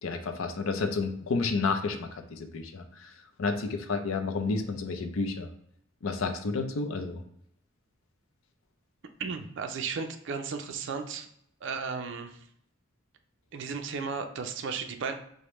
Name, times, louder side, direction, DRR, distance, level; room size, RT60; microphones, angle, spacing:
voice 1, 0.0-3.1 3.4-5.5 6.0-7.2, left 4 dB, 80° left, 6 dB, 0.5 m, -31 dB
voice 2, 9.2-11.3 11.6-12.4 13.5-15.1, right 5 dB, 60° right, 6 dB, 0.4 m, -34 dB
4.9 x 2.1 x 3.0 m, 0.71 s
head